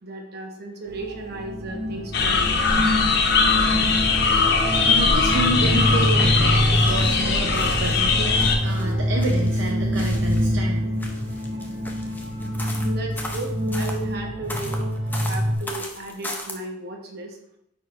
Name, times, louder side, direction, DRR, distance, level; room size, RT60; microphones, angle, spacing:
voice 1, 0.0-2.8 12.9-14.8 15.2-17.4, right 2 dB, 50° right, 1 dB, 1.1 m, -35 dB
sound 1, 0.9-15.6, equal, 85° right, 1.6 m, -25 dB
sound 2, 2.1-8.6, left 4 dB, 55° left, 0.7 m, -20 dB
voice 2, 4.8-10.9, right 1 dB, 65° right, 0 dB, 0.7 m, -29 dB
sound 3, 6.0-7.2 7.5-10.5 10.9-14.0 14.5-16.5, left 1 dB, 10° left, 0.6 m, -37 dB
10.0 x 4.5 x 2.5 m, 0.79 s
head